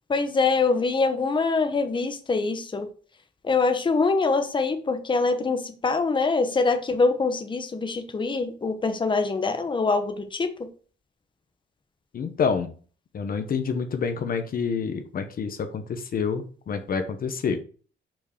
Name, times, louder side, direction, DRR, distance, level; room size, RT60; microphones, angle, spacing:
voice 1, 0.1-2.9 3.4-10.5, left 4 dB, 25° left, 7 dB, 1.0 m, -24 dB
voice 2, 12.1-12.7 13.1-17.6, left 5 dB, 55° left, 7 dB, 0.9 m, -28 dB
5.9 x 4.6 x 6.4 m, 0.41 s
cardioid pair, 130°, 18 cm